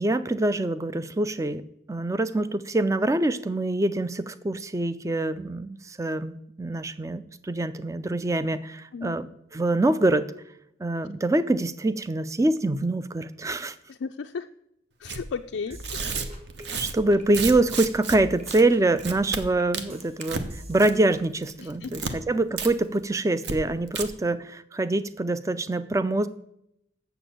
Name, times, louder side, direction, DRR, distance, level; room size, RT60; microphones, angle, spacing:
voice 1, 0.0-9.3 9.5-10.3 10.8-13.8 16.8-26.3, right 2 dB, 15° right, 14 dB, 0.4 m, -25 dB
voice 2, 13.9-14.5 15.0-16.1 21.6-22.2, left 5 dB, 75° left, 5 dB, 0.4 m, -35 dB
Tearing, 15.0-15.2 15.7-18.2 18.5-18.6 19.0-19.4 19.7-20.5 20.7-21.1 21.4-22.1 22.6-22.7 23.0-23.1 23.4-23.5 23.9-24.0, right 5 dB, 60° right, 0.9 m, -32 dB
sound 1, 15.7-17.2 17.5-17.8 18.1-21.3, right 1 dB, 35° right, 1.5 m, -46 dB
7.1 x 7.0 x 7.5 m, 0.78 s
head